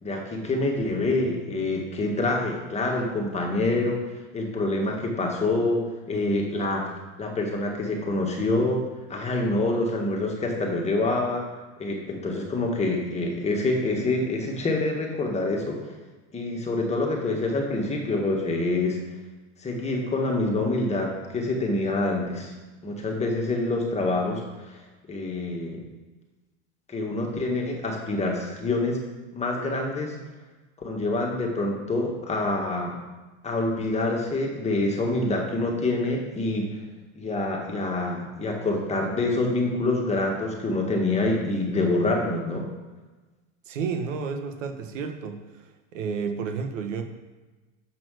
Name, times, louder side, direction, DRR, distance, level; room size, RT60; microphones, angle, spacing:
voice 1, 0.0-4.0 4.3-6.9 7.2-8.8 9.1-11.4 11.8-15.9 16.3-19.0 19.6-22.5 22.8-24.4 24.7-24.8 25.1-25.8 26.9-29.0 29.3-30.2 30.8-33.0 33.4-36.8 37.2-42.7, left 2 dB, 15° left, 0 dB, 1.8 m, -26 dB
voice 2, 43.7-45.4 45.9-47.0, right 5 dB, 80° right, 6 dB, 1.4 m, -31 dB
7.2 x 6.1 x 6.5 m, 1.2 s
supercardioid pair, 125°, 37 cm